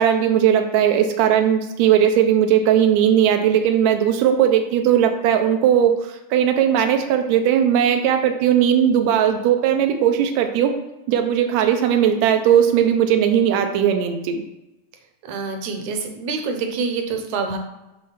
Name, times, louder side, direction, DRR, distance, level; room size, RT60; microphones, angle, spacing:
voice 1, 0.0-10.7 11.1-14.4, right 9 dB, 90° right, 5 dB, 1.5 m, -18 dB
voice 2, 15.2-17.6, right 4 dB, 70° right, 4 dB, 2.0 m, -26 dB
7.4 x 3.1 x 5.8 m, 0.98 s
omnidirectional pair, 3.9 m